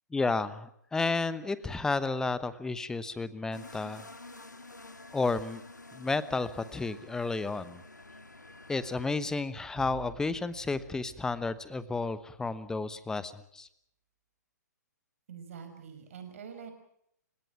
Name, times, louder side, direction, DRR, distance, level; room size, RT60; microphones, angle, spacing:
voice 1, 0.1-4.1 5.1-5.6 5.9-7.8 8.7-13.7, left 3 dB, 5° left, 16 dB, 1.0 m, -32 dB
sound 1, 3.5-9.1, left 2 dB, 80° left, 1.9 m, -49 dB
Bowed string instrument, 9.8-12.8, right 6 dB, 30° right, 5.3 m, -52 dB
voice 2, 15.3-16.7, right 7 dB, 50° right, 7 dB, 5.5 m, -45 dB
29.5 x 17.5 x 6.0 m, 0.73 s
figure-of-eight pair, 120°, 10 cm